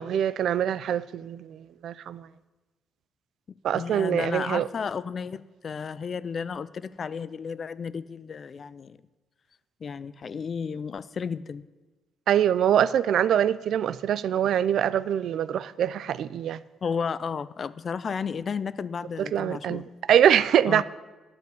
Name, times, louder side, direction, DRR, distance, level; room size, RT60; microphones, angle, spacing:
voice 1, 0.0-2.3 3.6-4.7 12.3-16.6 19.2-20.8, right 9 dB, 70° right, 0.3 m, -24 dB
voice 2, 3.5-9.0 9.8-11.7 16.8-19.8 20.7-20.8, left 6 dB, 45° left, 0.3 m, -33 dB
9.3 x 5.1 x 7.9 m
cardioid pair, 90°, 0 cm